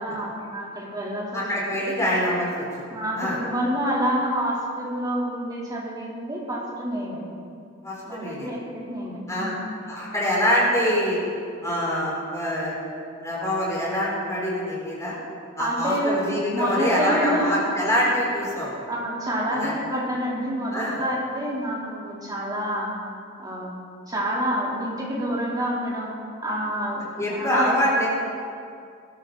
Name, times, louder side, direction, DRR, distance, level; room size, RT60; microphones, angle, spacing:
voice 1, 0.0-1.6 2.9-7.2 8.0-9.6 15.6-16.2 16.5-17.5 18.9-22.9 23.4-23.7 24.1-27.0 27.3-28.1, equal, 20° right, -5 dB, 3.1 m, -28 dB
voice 2, 1.3-2.8 3.2-3.4 7.8-8.5 9.3-9.5 9.9-11.2 11.6-12.7 13.2-15.2 15.6-18.8 19.6-19.7 20.7-21.0 27.2-28.1, equal, 15° left, -6 dB, 4.3 m, -24 dB
19.5 x 12.5 x 3.9 m, 2.4 s
head